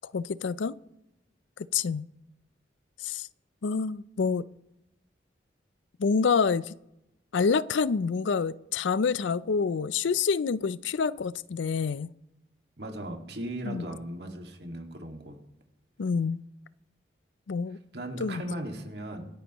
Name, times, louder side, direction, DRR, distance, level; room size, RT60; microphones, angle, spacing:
voice 1, 0.1-0.8 1.7-2.1 3.0-3.3 3.6-4.4 6.0-6.7 7.3-12.1 13.6-13.8 16.0-16.4 17.5-17.8 18.2-18.4, left 5 dB, 85° left, 18 dB, 0.5 m, -27 dB
voice 2, 12.8-15.4 17.9-19.3, right 1 dB, 65° right, 3 dB, 2.0 m, -37 dB
26.0 x 9.7 x 3.0 m, 0.87 s
head